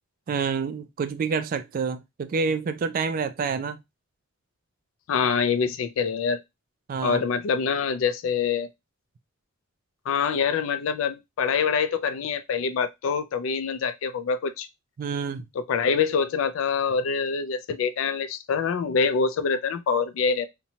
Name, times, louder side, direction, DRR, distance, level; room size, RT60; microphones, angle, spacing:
voice 1, 0.3-3.8 6.9-7.3 15.0-15.5, right 5 dB, 45° right, 0.3 m, -28 dB
voice 2, 5.1-6.4 7.0-8.7 10.1-14.7 15.7-20.5, left 6 dB, 85° left, 0.3 m, -25 dB
2.7 x 2.1 x 2.8 m
head